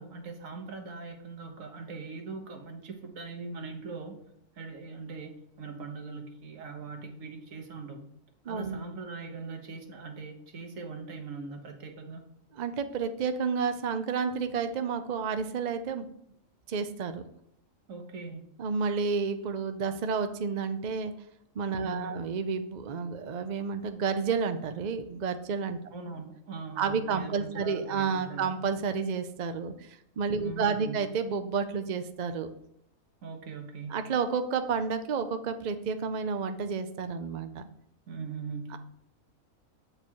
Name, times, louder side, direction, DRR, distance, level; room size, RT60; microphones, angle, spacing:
voice 1, 0.0-4.2 4.6-8.0 8.5-12.2 17.9-18.5 21.8-22.2 25.9-28.6 30.4-31.1 33.2-34.0 38.1-38.8, right 4 dB, 70° right, 4 dB, 1.6 m, -41 dB
voice 2, 8.4-8.8 12.5-16.1 16.7-17.2 18.6-21.1 21.5-25.8 26.8-32.5 33.9-37.6 38.7-38.8, right 5 dB, 50° right, 8 dB, 0.5 m, -30 dB
8.4 x 5.0 x 4.5 m, 0.74 s
omnidirectional pair, 1.4 m